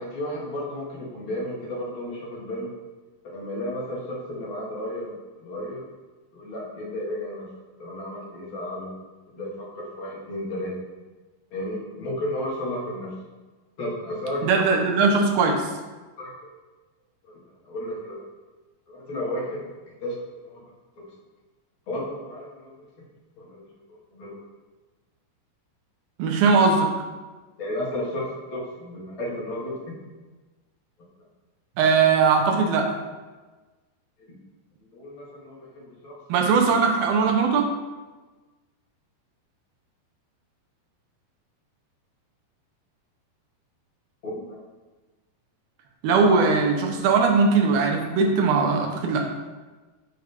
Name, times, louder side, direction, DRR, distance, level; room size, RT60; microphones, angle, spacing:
voice 1, 0.0-2.7 3.2-5.8 6.3-7.5 7.8-8.9 9.3-10.7 11.5-13.1 13.8-14.4 16.2-16.5 17.2-17.4 17.6-18.2 18.9-19.6 20.0-20.6 21.9-22.7 23.4-23.6 23.9-24.4 27.6-30.0 34.9-36.2 44.2-44.6, left 1 dB, 50° left, -4 dB, 1.6 m, -33 dB
voice 2, 14.4-15.7 26.2-26.9 31.8-33.0 36.3-37.7 46.0-49.3, right 4 dB, 75° right, 2 dB, 2.4 m, -20 dB
9.1 x 5.2 x 3.4 m, 1.3 s
omnidirectional pair, 4.9 m